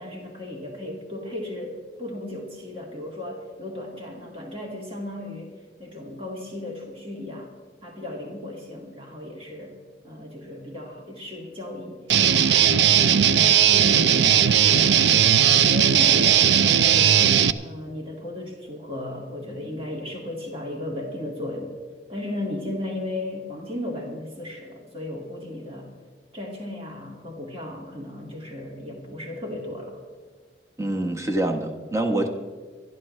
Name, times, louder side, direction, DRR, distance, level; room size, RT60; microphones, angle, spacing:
voice 1, 0.0-5.5 5.8-7.5 7.8-9.7 10.0-12.0 12.3-15.2 15.5-17.2 17.6-21.7 22.1-25.9 26.3-30.0, left 1 dB, 35° right, -1 dB, 2.3 m, -35 dB
Guitar, 12.1-17.5, right 9 dB, 80° right, 0.5 m, -17 dB
voice 2, 30.8-32.3, right 1 dB, 15° right, 3 dB, 1.2 m, -25 dB
25.5 x 12.0 x 3.3 m, 1.5 s
head